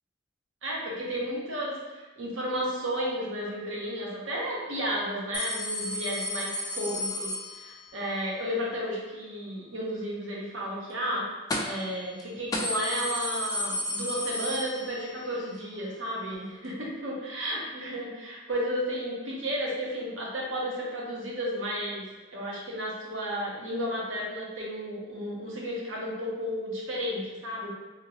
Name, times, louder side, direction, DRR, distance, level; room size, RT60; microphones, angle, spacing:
voice 1, 0.6-11.3 11.6-22.0 22.3-27.7, equal, 85° right, -3 dB, 0.8 m, -33 dB
sound 1, 5.3-8.0 11.5-11.9 12.2-12.3 12.5-15.2 15.6-15.7 16.7-16.8, left 1 dB, 20° left, 0.3 m, -33 dB
2.9 x 2.8 x 2.8 m, 1.2 s
head